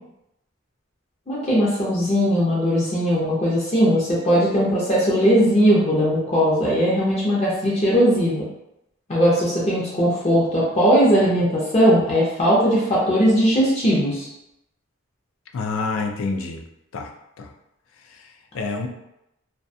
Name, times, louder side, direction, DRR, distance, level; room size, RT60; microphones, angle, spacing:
voice 1, 1.3-8.5 9.1-14.3, equal, 30° left, -6 dB, 0.5 m, -19 dB
voice 2, 15.5-16.6 16.9-17.1 17.4-17.5 18.0-18.9, left 3 dB, 85° left, 4 dB, 0.4 m, -28 dB
2.3 x 2.2 x 2.6 m, 0.85 s
head